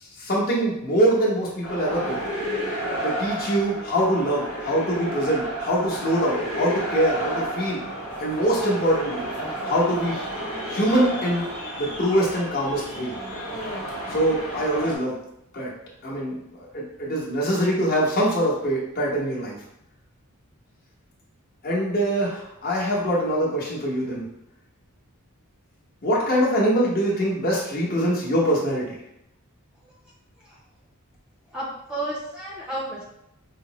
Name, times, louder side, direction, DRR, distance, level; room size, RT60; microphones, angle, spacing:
voice 1, 0.2-2.2 3.0-7.8 8.2-9.3 9.7-10.2 10.7-11.5 11.8-13.1 14.1-15.2 15.5-15.7 16.0-19.6 21.6-24.3 26.0-29.0, equal, 45° left, -4 dB, 1.0 m, -23 dB
sound 1, 1.6-15.0, right 1 dB, 80° left, 1.3 m, -31 dB
voice 2, 31.5-33.0, right 1 dB, 5° right, -6 dB, 0.5 m, -32 dB
5.0 x 2.0 x 2.9 m, 0.81 s
head